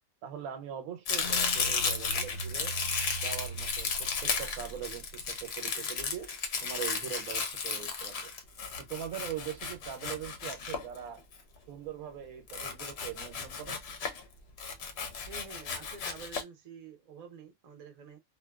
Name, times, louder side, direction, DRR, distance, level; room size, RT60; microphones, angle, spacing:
voice 1, 0.2-2.8 3.2-6.3 6.6-8.3 8.8-11.2 11.7-13.8, right 9 dB, 85° right, 1.1 m, -41 dB
Domestic sounds home sounds, 1.1-11.3 12.5-14.2 14.6-16.4, left 5 dB, 60° left, 0.7 m, -34 dB
sound 1, 1.2-5.5, right 3 dB, 90° left, 1.1 m, -41 dB
voice 2, 15.3-18.2, right 5 dB, 45° right, 0.6 m, -48 dB
2.6 x 2.2 x 2.2 m
omnidirectional pair, 1.5 m